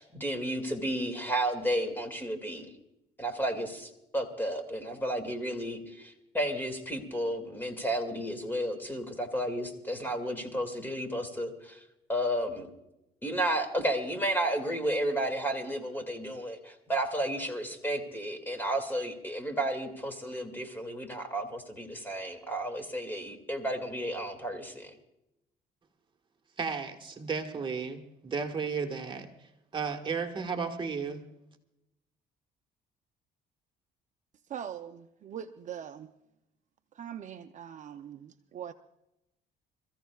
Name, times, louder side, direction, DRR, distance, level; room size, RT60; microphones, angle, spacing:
voice 1, 0.0-2.7 3.2-11.8 12.1-12.7 13.2-24.9, right 1 dB, 10° left, 6 dB, 2.3 m, -32 dB
voice 2, 26.6-31.2, right 5 dB, 30° right, 3 dB, 1.6 m, -34 dB
voice 3, 34.5-36.1 37.0-38.7, right 9 dB, 45° right, 7 dB, 0.6 m, -42 dB
27.0 x 15.0 x 2.4 m, 0.88 s
cardioid pair, 110°, 17 cm